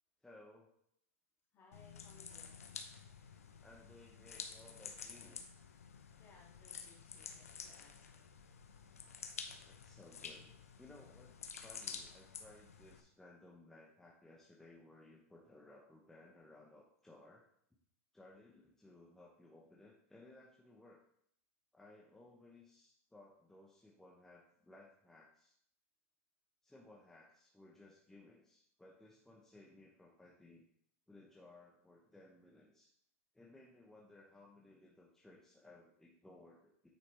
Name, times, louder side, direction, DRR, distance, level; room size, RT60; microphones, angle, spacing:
voice 1, 0.2-0.7 3.6-5.4 9.6-10.5 10.8-17.4 18.1-21.0 21.7-25.5 26.6-30.6 31.1-32.9 33.3-36.9, left 2 dB, 5° left, -3 dB, 1.0 m, -60 dB
voice 2, 1.5-2.7 6.2-8.3, left 4 dB, 30° left, -3 dB, 2.6 m, -65 dB
sound 1, 1.7-13.0, left 6 dB, 90° left, 0.9 m, -50 dB
9.2 x 4.8 x 3.4 m, 0.69 s
hypercardioid pair, 115°, 8 cm